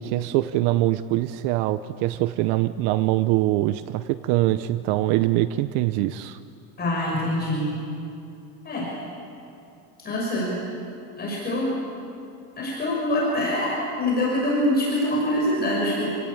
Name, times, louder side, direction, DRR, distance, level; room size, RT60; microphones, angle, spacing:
voice 1, 0.0-6.4, right 15 dB, 55° right, 13 dB, 0.8 m, -23 dB
voice 2, 6.8-7.8 8.6-8.9 10.0-10.6 11.2-11.8 12.6-16.1, left 1 dB, 20° left, -4 dB, 5.9 m, -24 dB
28.5 x 18.0 x 8.5 m, 2.6 s
supercardioid pair, 150°, 48 cm